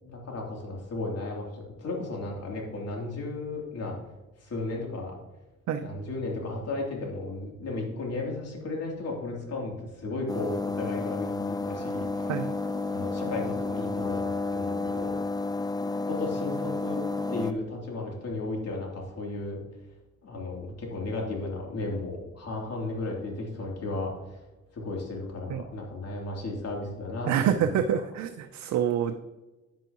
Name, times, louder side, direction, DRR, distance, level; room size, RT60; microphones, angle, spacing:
voice 1, 0.0-3.9 4.4-5.1 5.8-12.3 12.9-15.1 16.1-17.0 17.3-19.6 20.2-24.4 24.7-27.6, left 2 dB, 55° left, -1 dB, 3.1 m, -34 dB
sound 1, 10.3-17.5, left 3 dB, 15° left, 0.6 m, -31 dB
voice 2, 27.3-29.1, right 9 dB, 70° right, 7 dB, 0.6 m, -26 dB
9.5 x 9.0 x 3.0 m, 1.1 s
cardioid pair, 90°, 30 cm